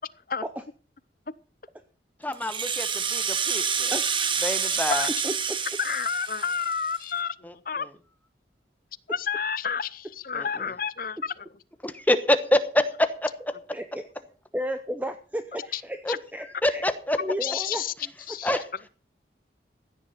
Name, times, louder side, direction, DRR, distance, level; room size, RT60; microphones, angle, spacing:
voice 1, 2.2-3.9 4.4-5.1 7.4-7.5 10.3-10.7 11.8-13.3 16.0-16.1 16.6-17.2 18.4-18.6, left 1 dB, 10° left, 10 dB, 1.1 m, -26 dB
Rattle (instrument), 2.3-7.1, right 6 dB, 30° right, 1.2 m, -28 dB
voice 2, 3.9-4.2 5.2-5.6 13.7-14.0 14.5-16.0 16.3-16.8 17.2-17.8 18.2-18.6, equal, 10° right, 8 dB, 0.8 m, -33 dB
voice 3, 5.8-7.9 9.1-11.5 15.7-15.8 16.1-16.2 17.4-17.9 18.3-18.5, left 6 dB, 50° left, 17 dB, 0.7 m, -30 dB
15.5 x 9.8 x 5.8 m, 0.38 s
head